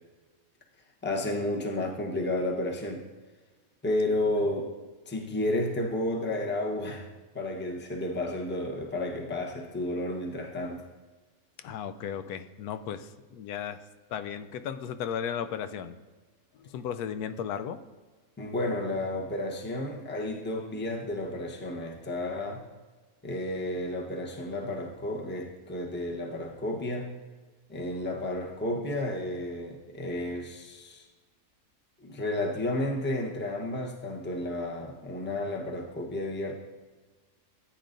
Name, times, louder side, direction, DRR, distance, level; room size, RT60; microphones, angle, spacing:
voice 1, 1.0-3.0 3.8-4.8 5.1-7.1 7.3-10.8 18.4-22.7 23.2-27.1 27.7-31.1 32.0-36.5, left 1 dB, 10° left, 1 dB, 0.7 m, -32 dB
voice 2, 11.6-13.8 14.1-16.0 16.6-17.8, left 8 dB, 85° left, 11 dB, 1.1 m, -35 dB
14.5 x 8.9 x 2.6 m, 1.3 s
omnidirectional pair, 1.6 m